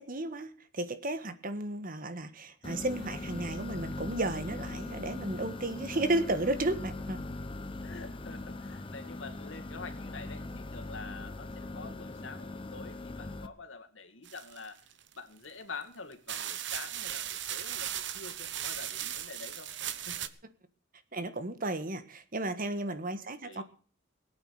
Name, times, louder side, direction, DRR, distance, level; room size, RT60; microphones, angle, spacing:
voice 1, 0.0-7.2 21.1-23.6, right 2 dB, 45° right, 11 dB, 1.5 m, -33 dB
sound 1, 2.6-13.5, left 2 dB, 25° left, 1.0 m, -40 dB
voice 2, 7.8-14.8 15.1-20.3 23.4-23.6, left 4 dB, 80° left, 7 dB, 2.2 m, -47 dB
sound 2, 14.2-15.1 15.8-15.9 16.3-20.3, right 11 dB, 65° right, 1.0 m, -37 dB
19.5 x 9.1 x 6.5 m, 0.43 s
head